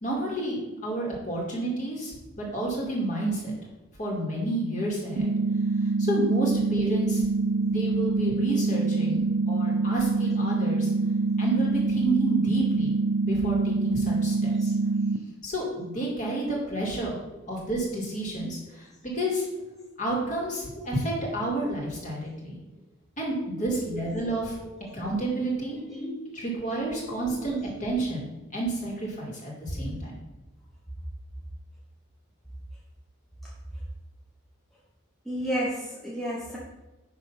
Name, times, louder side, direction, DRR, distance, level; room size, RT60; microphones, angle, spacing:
voice 1, 0.0-3.5 4.0-5.3 6.0-7.2 7.6-10.9 11.4-13.0 13.2-14.7 15.4-17.2 17.5-19.4 20.0-22.6 23.2-24.6 24.9-25.8 26.4-28.3 28.5-30.1, right 1 dB, 35° left, -3 dB, 2.4 m, -30 dB
sound 1, 5.2-15.2, right 3 dB, 70° right, 0.5 m, -25 dB
voice 2, 23.7-24.3 24.6-24.9 25.7-26.4 27.3-27.6 35.2-36.6, equal, ahead, -6 dB, 1.1 m, -35 dB
10.5 x 3.6 x 5.6 m, 1.0 s
head